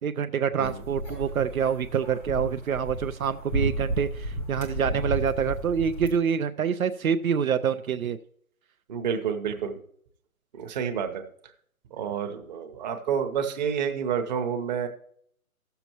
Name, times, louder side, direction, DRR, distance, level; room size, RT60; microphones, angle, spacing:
voice 1, 0.0-8.2, right 7 dB, 70° right, 9 dB, 0.7 m, -26 dB
sound 1, 0.6-6.1, right 1 dB, 5° left, 0.6 m, -32 dB
voice 2, 8.9-9.8 10.5-11.2 11.9-14.9, right 7 dB, 30° right, 4 dB, 1.0 m, -29 dB
15.5 x 6.9 x 2.9 m, 0.64 s
hypercardioid pair, 150°, 43 cm